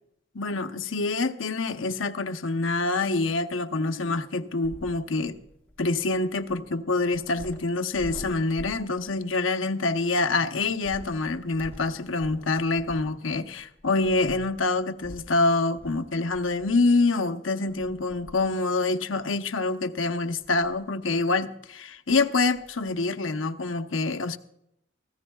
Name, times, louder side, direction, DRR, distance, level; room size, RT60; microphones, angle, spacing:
voice 1, 0.3-5.4 5.8-24.4, left 3 dB, 90° left, 0.9 m, -26 dB
sound 1, 4.6-9.4 10.7-17.0 17.7-18.6 19.0-19.1 20.2-20.9 21.8-21.9 22.1-22.2 22.5-22.9, left 1 dB, 10° left, 3.3 m, -46 dB
24.5 x 15.5 x 2.3 m
head